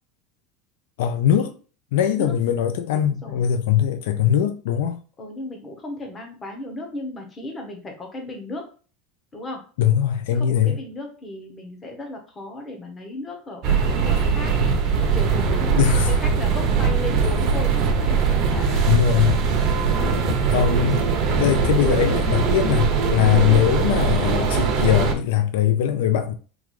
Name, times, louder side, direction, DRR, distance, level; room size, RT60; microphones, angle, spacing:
voice 1, 1.0-1.5 1.9-5.0 9.8-10.8 15.8-16.1 18.8-19.4 20.5-21.1 21.4-26.3, left 10 dB, 80° left, 0.4 m, -21 dB
voice 2, 2.9-3.4 5.2-8.7 9.3-9.6 10.3-14.6 15.0-18.9 19.8-20.2, left 2 dB, 15° left, 0.7 m, -35 dB
sound 1, 13.6-25.1, right 5 dB, 40° right, 0.6 m, -21 dB
3.7 x 2.3 x 3.1 m
supercardioid pair, 175°, 0 cm